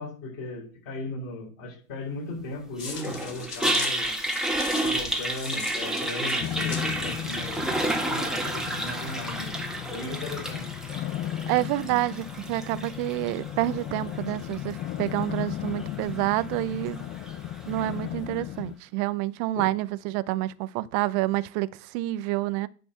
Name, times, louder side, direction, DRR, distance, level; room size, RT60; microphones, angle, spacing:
voice 1, 0.0-4.2 4.8-9.5 9.9-10.6 19.5-19.7, left 2 dB, 45° left, 6.1 m, -37 dB
sound 1, 2.8-8.3, left 5 dB, 85° left, 2.3 m, -40 dB
Toilet flush, 2.8-18.0, right 1 dB, ahead, 1.6 m, -32 dB
sound 2, 6.4-18.7, left 12 dB, 25° left, 0.4 m, -35 dB
voice 2, 11.5-17.1 17.7-22.7, right 17 dB, 40° right, 0.7 m, -28 dB
10.0 x 4.4 x 7.1 m
hypercardioid pair, 90°, 45 cm